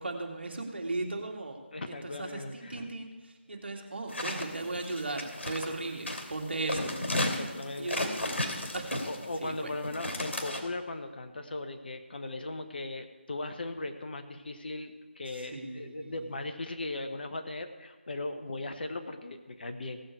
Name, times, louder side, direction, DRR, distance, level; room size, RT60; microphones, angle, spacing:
voice 1, 0.0-1.6 1.9-6.9 7.8-8.0 8.7-9.0 9.4-9.7 15.5-16.3, right 2 dB, 60° right, 2 dB, 2.1 m, -37 dB
voice 2, 1.7-2.9 6.8-6.9 7.2-8.7 9.1-20.0, left 2 dB, 50° left, 6 dB, 1.1 m, -38 dB
sound 1, 4.1-5.7 6.1-6.3 6.7-9.4 9.8-10.6, left 1 dB, 75° left, 2.8 m, -33 dB
16.5 x 7.6 x 4.7 m, 1.2 s
figure-of-eight pair, 160°, 6 cm